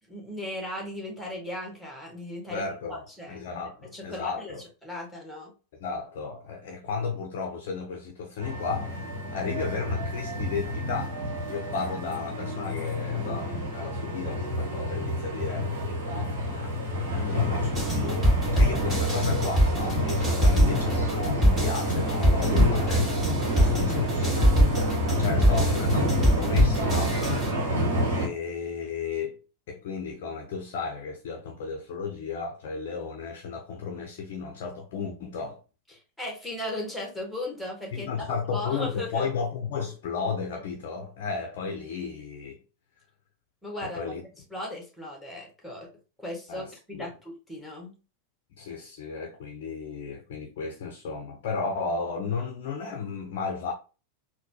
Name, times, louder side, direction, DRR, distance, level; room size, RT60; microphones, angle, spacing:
voice 1, 0.1-3.4 3.9-4.5 4.8-5.5 36.2-38.3 38.5-39.2 43.6-44.0 44.5-45.9 46.2-48.0, left 1 dB, ahead, 1.4 m, -37 dB
voice 2, 2.5-3.0 3.3-4.6 5.7-11.2 11.4-15.7 16.5-16.7 17.1-23.2 23.5-24.5 24.9-27.2 28.1-29.4 29.7-35.6 37.9-42.6 43.8-44.2 46.5-47.1 48.5-53.7, left 5 dB, 50° left, 0.5 m, -33 dB
sound 1, 8.4-28.3, left 1 dB, 65° right, 1.1 m, -29 dB
sound 2, 17.7-27.5, equal, 15° right, 1.8 m, -24 dB
3.9 x 2.2 x 2.7 m
figure-of-eight pair, 90°, 0 cm